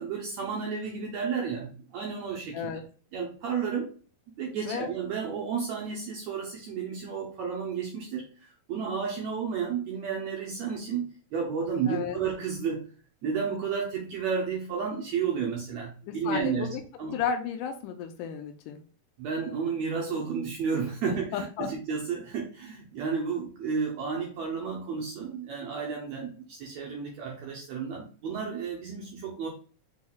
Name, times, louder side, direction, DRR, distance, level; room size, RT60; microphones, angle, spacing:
voice 1, 0.0-2.8 3.1-3.9 4.4-12.9 13.2-16.7 17.0-17.2 19.2-29.5, right 6 dB, 75° right, 0 dB, 1.6 m, -32 dB
voice 2, 11.9-12.2 16.0-16.8 17.1-18.8 21.0-21.7, left 7 dB, 80° left, 7 dB, 2.0 m, -33 dB
5.2 x 3.6 x 2.3 m, 0.39 s
omnidirectional pair, 3.9 m